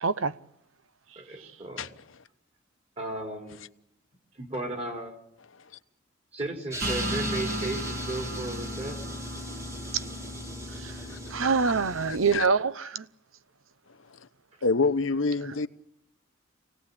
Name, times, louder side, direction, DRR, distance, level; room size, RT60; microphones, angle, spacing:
voice 1, 0.0-0.3 10.8-10.9 11.3-13.0, right 5 dB, 85° right, 0.9 m, -25 dB
voice 2, 1.2-1.9 3.0-3.6 4.3-5.2 6.3-9.2, right 2 dB, 30° right, 4.1 m, -35 dB
sound 1, 6.7-12.4, right 1 dB, 15° right, 1.9 m, -40 dB
sound 2, 6.8-12.2, equal, 50° right, 2.3 m, -35 dB
voice 3, 12.1-12.5 14.6-15.7, left 4 dB, 80° left, 1.0 m, -27 dB
25.5 x 18.0 x 8.6 m
head